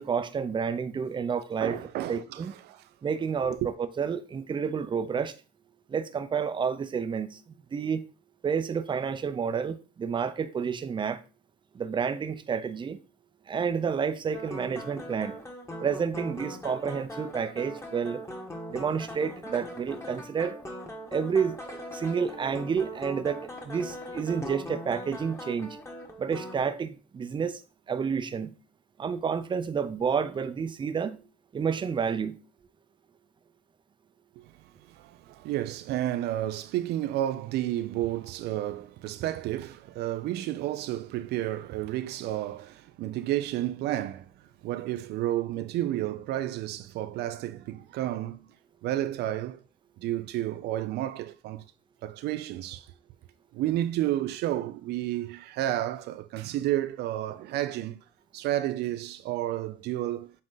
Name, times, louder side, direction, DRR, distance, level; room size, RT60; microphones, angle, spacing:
voice 1, 0.0-1.8 2.1-2.5 3.0-5.4 5.9-7.4 7.7-8.0 8.4-11.2 11.7-13.0 13.5-15.4 15.8-18.2 18.7-20.6 21.1-25.8 26.2-27.6 27.9-28.5 29.0-31.2 31.5-32.4, right 6 dB, 30° right, 0.6 m, -30 dB
voice 2, 1.6-2.8 3.6-3.7 34.4-34.5 34.9-44.3 44.6-48.5 48.8-49.6 50.0-51.6 52.0-52.9 53.5-58.0 58.3-60.3, right 13 dB, 80° right, 0.5 m, -31 dB
sound 1, 14.3-26.6, equal, 15° left, 1.5 m, -40 dB
7.5 x 3.7 x 3.9 m
cardioid pair, 110°, 17 cm